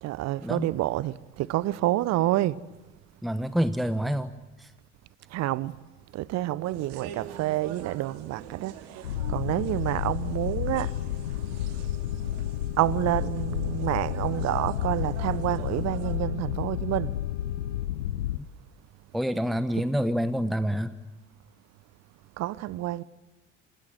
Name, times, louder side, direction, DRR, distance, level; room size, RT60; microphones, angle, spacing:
voice 1, 0.0-2.6 5.3-5.8 6.1-10.9 12.8-17.2 19.8-19.9 22.4-23.0, right 15 dB, 45° right, 0.9 m, -28 dB
voice 2, 3.2-4.3 4.6-4.7 19.1-20.9, equal, ahead, 1.1 m, -27 dB
sound 1, 6.6-16.2, right 8 dB, 60° right, 3.1 m, -45 dB
sound 2, 9.0-18.4, left 12 dB, 75° left, 0.8 m, -31 dB
sound 3, 10.7-17.9, left 8 dB, 45° left, 3.0 m, -48 dB
28.5 x 17.5 x 9.4 m
figure-of-eight pair, 55°, 36 cm